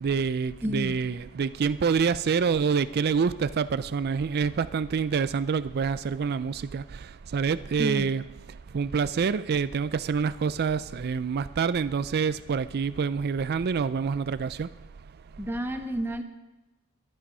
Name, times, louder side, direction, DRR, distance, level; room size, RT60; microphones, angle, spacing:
voice 1, 0.0-6.8 7.3-8.2 8.7-14.7, right 6 dB, 45° right, 14 dB, 0.4 m, -26 dB
voice 2, 0.6-1.0 7.8-8.1 15.4-16.2, equal, 10° right, 5 dB, 1.3 m, -30 dB
21.5 x 8.7 x 5.4 m, 1.1 s
head